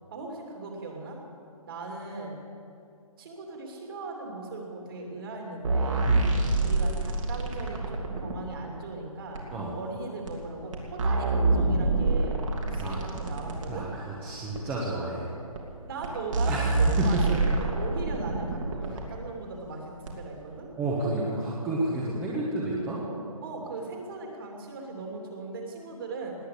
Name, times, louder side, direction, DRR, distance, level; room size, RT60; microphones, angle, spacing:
voice 1, 0.1-1.2 1.7-2.4 3.2-6.2 6.6-9.4 9.8-13.9 15.9-20.7 23.4-26.4, right 3 dB, 40° right, 0 dB, 2.9 m, -38 dB
sound 1, 5.6-8.4 9.3-9.4 10.3-10.4 10.7-13.7 14.5-14.6 15.5-15.6 16.0-16.1 16.3-19.0 20.1-20.2, right 2 dB, 55° right, 2.9 m, -26 dB
voice 2, 13.7-15.2 16.5-17.6 20.8-23.0, right 2 dB, 10° right, -5 dB, 1.3 m, -30 dB
19.5 x 8.6 x 8.5 m, 2.5 s
hypercardioid pair, 165°, 19 cm